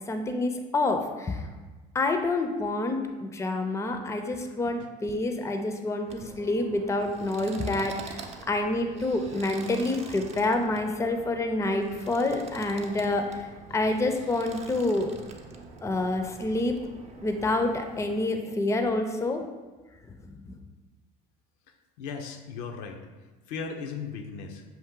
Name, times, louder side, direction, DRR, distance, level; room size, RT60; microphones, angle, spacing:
voice 1, 0.1-1.4 1.9-13.5 13.7-15.1 15.8-16.8 17.2-19.4 20.3-20.6, left 2 dB, 15° left, 6 dB, 0.5 m, -28 dB
sound 1, 6.1-18.3, right 4 dB, 35° right, 0.6 m, -45 dB
voice 2, 22.0-23.0 23.5-24.6, left 5 dB, 80° left, 4 dB, 0.6 m, -37 dB
5.7 x 2.5 x 3.7 m, 1.2 s
supercardioid pair, 90°, 20 cm